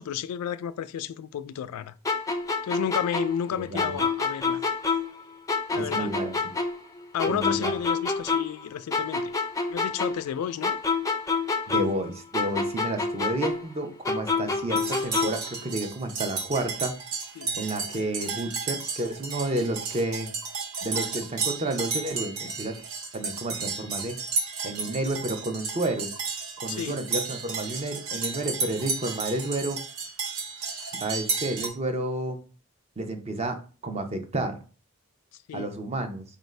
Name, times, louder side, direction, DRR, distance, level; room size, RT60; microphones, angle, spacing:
voice 1, 0.0-1.9 2.6-4.6 5.7-6.1 7.1-9.3 9.7-10.8 17.4-17.5 26.7-27.0 35.5-35.7, left 9 dB, 90° left, 0.3 m, -32 dB
sound 1, 2.0-5.2 5.5-8.6 8.9-12.1 12.3-15.5, left 4 dB, 15° left, 0.4 m, -28 dB
voice 2, 5.8-6.5 7.3-7.7 11.7-16.9 17.6-20.3 20.8-22.8 23.1-24.2 24.6-26.1 26.6-29.8 31.0-32.4 33.0-33.6 33.8-34.6 35.5-36.2, right 2 dB, 30° right, 0.6 m, -30 dB
sound 2, 14.8-31.7, right 5 dB, 70° right, 0.8 m, -33 dB
4.6 x 2.6 x 3.2 m
head